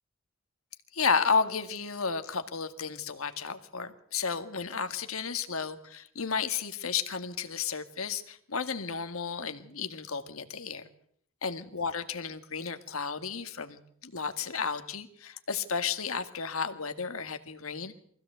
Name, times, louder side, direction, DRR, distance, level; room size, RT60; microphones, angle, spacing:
voice 1, 0.9-10.9 11.4-18.0, left 5 dB, 90° left, 9 dB, 1.8 m, -32 dB
24.0 x 16.0 x 8.1 m, 0.66 s
head